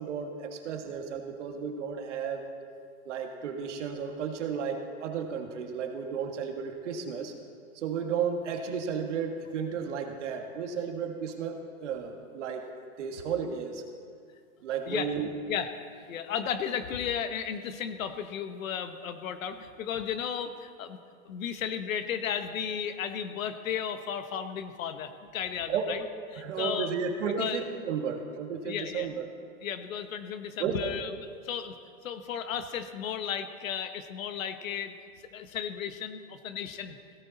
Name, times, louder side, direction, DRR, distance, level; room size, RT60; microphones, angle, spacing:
voice 1, 0.0-2.5 3.1-7.3 7.7-12.6 13.0-13.8 14.6-15.4 25.7-25.9 26.4-29.3 30.6-30.9, right 6 dB, 55° right, 4 dB, 1.8 m, -33 dB
voice 2, 16.1-21.0 21.2-26.0 26.3-26.9 27.3-27.6 28.6-29.1 29.6-31.1 31.4-31.7 32.0-34.9 35.3-37.0, left 8 dB, 65° left, 9 dB, 1.3 m, -34 dB
17.0 x 16.5 x 4.1 m, 2.2 s
supercardioid pair, 170°, 43 cm